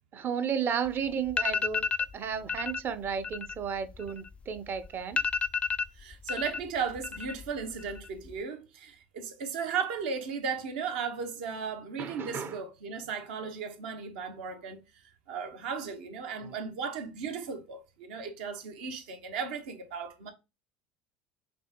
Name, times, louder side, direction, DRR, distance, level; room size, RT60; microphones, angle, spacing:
voice 1, 0.1-5.2 12.0-12.6 16.4-16.5, right 7 dB, 40° right, 0.6 m, -33 dB
iphone alarm, 0.9-1.0 1.3-2.1 2.5-2.8 3.1-4.6 4.8-4.9 5.2-6.6 6.9-7.5 7.8-8.3, left 5 dB, 20° left, 0.4 m, -31 dB
voice 2, 6.0-14.8 15.3-20.3, right 6 dB, 80° right, 1.0 m, -36 dB
5.3 x 2.9 x 2.9 m
hypercardioid pair, 85°, 5 cm